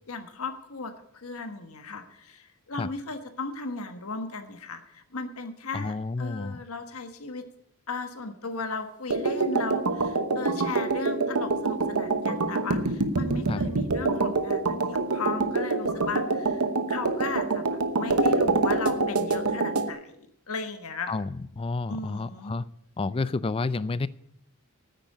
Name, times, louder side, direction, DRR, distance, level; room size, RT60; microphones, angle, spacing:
voice 1, 0.1-7.5 7.9-21.1 21.9-22.5, left 4 dB, 70° left, 8 dB, 1.3 m, -36 dB
voice 2, 5.7-6.6 13.5-13.6 21.1-22.6 23.0-24.1, left 3 dB, 25° left, 18 dB, 0.4 m, -30 dB
sound 1, 9.1-19.9, right 3 dB, 80° right, 1.1 m, -26 dB
9.3 x 9.1 x 8.4 m, 0.73 s
head